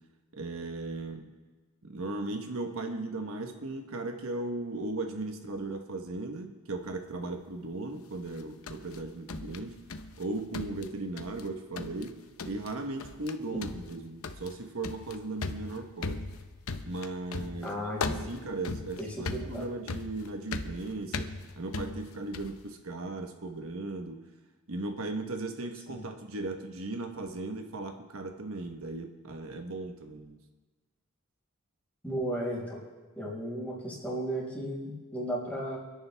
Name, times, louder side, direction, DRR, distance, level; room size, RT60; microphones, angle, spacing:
voice 1, 0.3-1.3 1.8-9.8 10.2-12.1 12.4-16.2 16.8-21.3 21.6-24.2 24.7-30.4, right 2 dB, 70° right, 4 dB, 1.2 m, -37 dB
sound 1, 8.3-10.2 10.5-11.5 11.8-12.1 12.4-12.7 13.0-13.3 13.6-22.6, left 3 dB, 75° left, 0.8 m, -38 dB
voice 2, 17.6-18.3 19.0-19.7 25.9-26.0 32.0-32.8 33.2-35.8, right 1 dB, 5° left, -6 dB, 5.3 m, -35 dB
29.5 x 10.5 x 3.5 m, 1.3 s
head